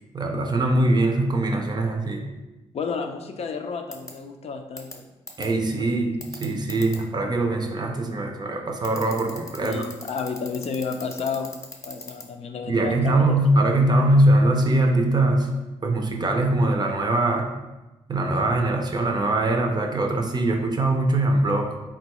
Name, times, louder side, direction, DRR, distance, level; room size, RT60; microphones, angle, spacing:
voice 1, 0.1-2.3 5.4-9.9 12.7-15.5 15.8-17.5 18.1-21.7, right 2 dB, 35° right, 3 dB, 0.5 m, -22 dB
voice 2, 2.7-5.1 5.7-5.9 9.6-11.5 11.8-13.4, left 5 dB, 55° left, 5 dB, 0.4 m, -31 dB
sound 1, 3.9-4.1 4.8-4.9 5.3-5.5 6.2-7.0 8.8-12.2, left 2 dB, 25° left, 0.7 m, -37 dB
3.7 x 2.3 x 2.9 m, 1.1 s
cardioid pair, 65°, 13 cm